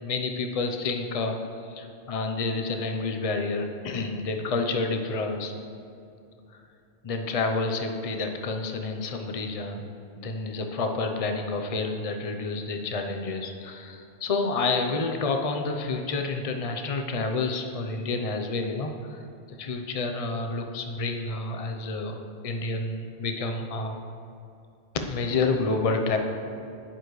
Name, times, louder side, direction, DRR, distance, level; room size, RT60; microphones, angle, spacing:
voice 1, 0.0-1.3 1.7-5.5 7.0-9.8 10.2-19.2 19.6-24.0 25.1-26.2, left 3 dB, 35° left, 4 dB, 0.7 m, -29 dB
11.5 x 10.0 x 3.2 m, 2.6 s
omnidirectional pair, 1.1 m